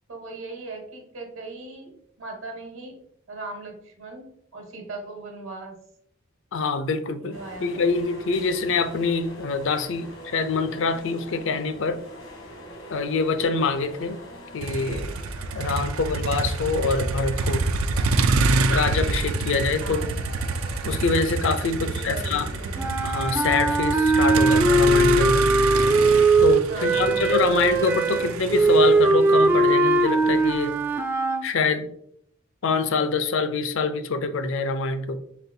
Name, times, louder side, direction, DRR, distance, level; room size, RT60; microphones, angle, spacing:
voice 1, 0.1-3.0 3.3-4.3 4.5-5.8 7.2-7.9 19.8-20.3 21.8-22.9 26.7-27.6, right 2 dB, 70° right, 3 dB, 1.2 m, -39 dB
voice 2, 6.5-12.0 12.9-14.2 14.5-15.1 15.5-17.7 18.7-20.0 20.8-22.5 23.0-25.5 26.4-30.8 31.4-31.9 32.6-35.2, left 4 dB, 65° left, 10 dB, 0.5 m, -25 dB
sound 1, 7.3-22.9, equal, 85° left, 1.3 m, -44 dB
Motor vehicle (road), 14.6-30.7, right 3 dB, 85° right, 0.4 m, -27 dB
sound 2, 22.8-31.5, right 2 dB, 10° right, 0.3 m, -20 dB
4.2 x 3.8 x 2.7 m, 0.68 s
head